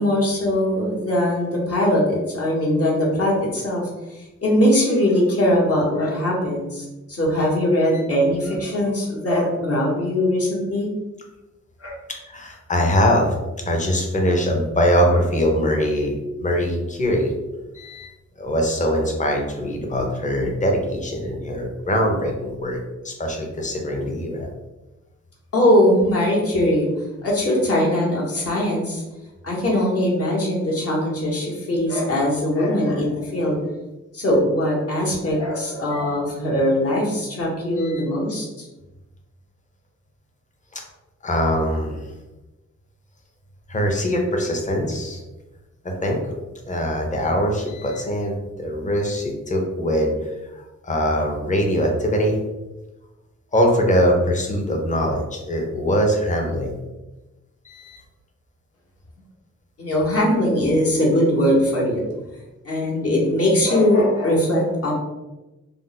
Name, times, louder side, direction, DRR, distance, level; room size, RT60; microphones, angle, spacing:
voice 1, 0.0-10.9 11.8-12.0 25.5-26.9 27.2-29.0 29.4-33.6 34.1-38.7 59.8-62.0 62.6-64.9, left 1 dB, 55° left, -4 dB, 1.1 m, -21 dB
voice 2, 12.3-13.3 13.7-16.1 16.4-17.3 17.7-18.1 18.4-22.8 23.0-24.5 37.8-38.0 40.7-40.8 41.2-42.1 43.7-45.2 45.8-46.2 46.7-52.4 53.5-56.8 57.6-58.0, equal, 25° left, 1 dB, 0.6 m, -22 dB
2.5 x 2.1 x 3.9 m, 1.1 s
cardioid pair, 90°, 29 cm